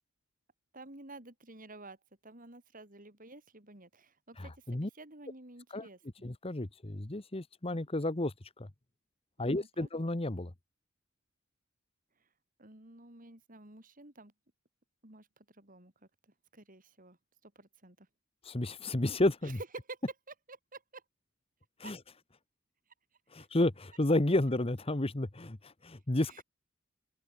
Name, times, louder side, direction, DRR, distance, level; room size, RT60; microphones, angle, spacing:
voice 1, 0.7-2.0 2.2-6.3 9.4-9.9 12.6-14.3 15.0-15.3 15.5-15.9 16.5-17.2 17.4-18.1 19.4-20.0 20.5-21.0 21.8-21.9 23.4-23.5 26.2-26.4, right 2 dB, 40° right, 3.9 m, -51 dB
voice 2, 4.4-4.9 5.7-5.9 6.2-8.7 9.4-10.5 18.4-19.6 21.8-22.0 23.3-26.4, left 1 dB, 25° left, 1.1 m, -31 dB
open air
head